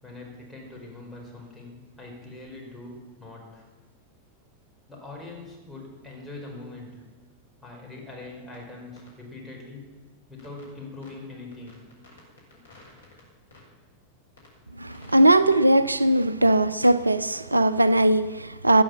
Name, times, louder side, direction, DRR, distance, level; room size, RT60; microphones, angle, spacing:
voice 1, 0.0-3.7 4.9-7.0 7.6-10.0 10.3-11.8, left 2 dB, 5° left, 5.0 m, -42 dB
sound 1, 8.5-8.6 9.0-9.1 10.4-10.7 11.0-11.1 11.5-13.2 13.5-13.7 14.4-14.5 14.9-15.3, left 2 dB, 70° left, 5.1 m, -52 dB
voice 2, 14.8-18.8, right 1 dB, 85° right, 0.4 m, -19 dB
16.0 x 10.0 x 7.2 m
figure-of-eight pair, 90°, 0 cm